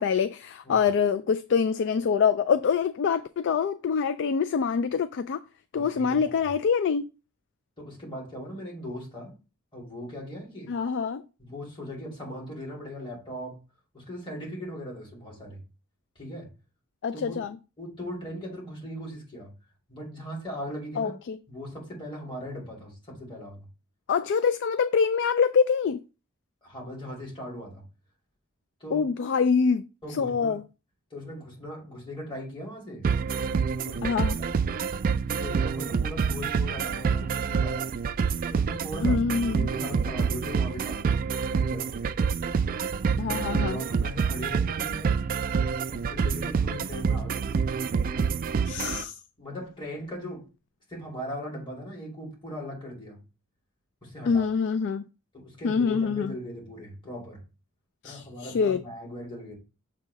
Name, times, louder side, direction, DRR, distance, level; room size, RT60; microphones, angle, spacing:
voice 1, 0.0-5.4 5.7-7.1 10.7-11.2 17.0-17.6 21.0-21.4 24.1-26.0 28.9-29.8 30.1-30.6 34.0-34.4 39.0-39.7 43.2-43.8 48.6-49.2 54.3-55.0 55.6-56.3 58.0-58.8, left 6 dB, 55° left, 0.3 m, -25 dB
voice 2, 5.7-6.5 7.8-9.3 9.7-10.7 11.4-13.6 13.9-15.6 16.2-16.5 17.1-17.4 17.8-19.5 19.9-21.1 21.5-23.7 26.6-27.8 28.8-29.1 30.0-30.6 31.1-33.1 33.8-34.6 35.4-38.0 38.5-39.2 39.5-41.2 41.5-42.1 43.3-43.4 43.6-45.2 45.9-47.8 49.4-50.5 50.9-53.2 54.0-54.5 55.3-57.4 58.0-59.6, equal, 25° left, 2.6 m, -39 dB
sound 1, 33.0-49.0, right 5 dB, 40° right, 0.3 m, -27 dB
7.1 x 2.8 x 5.2 m
head